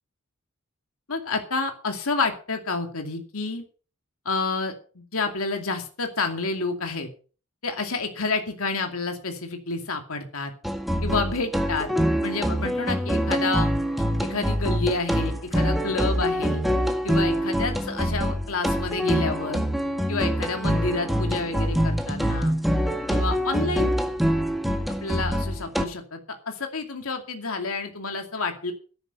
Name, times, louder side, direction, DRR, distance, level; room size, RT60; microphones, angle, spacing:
voice 1, 1.1-3.6 4.2-7.1 7.6-10.5 11.0-11.9 12.2-13.8 14.2-16.6 17.0-19.6 20.1-22.5 23.1-23.9 25.0-26.2 26.5-28.7, left 3 dB, 75° left, 5 dB, 2.5 m, -29 dB
sound 1, 10.6-25.8, equal, ahead, 1.7 m, -25 dB
13.0 x 11.0 x 5.6 m, 0.39 s
head